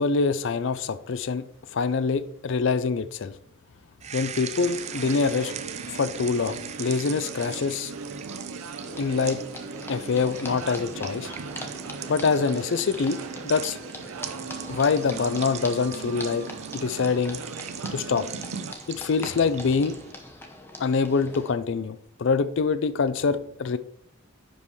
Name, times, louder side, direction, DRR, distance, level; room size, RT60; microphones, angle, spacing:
voice 1, 0.0-1.4 1.7-3.3 4.1-5.5 5.9-7.9 9.0-9.4 9.9-11.3 12.1-13.8 14.7-16.5 16.7-17.4 17.9-18.3 18.9-19.9 20.8-23.8, left 5 dB, 55° left, 14 dB, 0.4 m, -25 dB
sound 1, 4.0-20.1, right 8 dB, 30° right, 0.4 m, -41 dB
sound 2, 4.6-18.7, right 4 dB, 75° right, 0.6 m, -38 dB
sound 3, 8.8-21.5, left 1 dB, 10° left, 0.8 m, -43 dB
10.0 x 5.3 x 3.1 m, 0.71 s
head